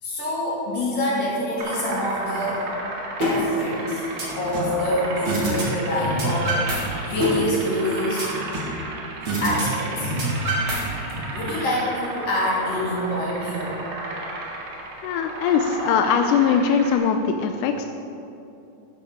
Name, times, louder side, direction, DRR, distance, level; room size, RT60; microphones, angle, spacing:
voice 1, 0.0-2.7 3.2-4.0 4.4-8.4 9.4-10.1 11.0-13.8, left 1 dB, 55° left, -5 dB, 3.7 m, -26 dB
sound 1, 1.6-17.0, right 2 dB, 65° right, 3.0 m, -33 dB
sound 2, 3.2-3.3 3.7-4.8 5.3-5.6 5.9-6.8 7.1-8.8 9.3-9.6 9.9-11.2, right 1 dB, 45° right, 2.6 m, -26 dB
voice 2, 15.0-17.9, left 6 dB, 90° left, 6 dB, 2.1 m, -21 dB
11.5 x 11.5 x 5.0 m, 2.8 s
omnidirectional pair, 3.5 m